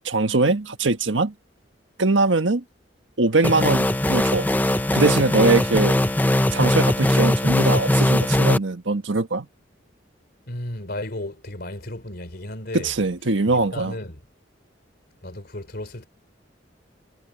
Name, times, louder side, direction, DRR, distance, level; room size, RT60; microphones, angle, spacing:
voice 1, 0.0-1.3 2.0-2.6 3.2-4.5 4.9-6.0 6.5-9.5 12.7-13.9, right 3 dB, 85° right, 1.4 m, -21 dB
sound 1, 3.4-8.6, left 1 dB, 10° left, 0.6 m, -20 dB
voice 2, 10.5-12.9 13.5-14.2 15.2-16.1, left 1 dB, 55° left, 3.6 m, -34 dB
head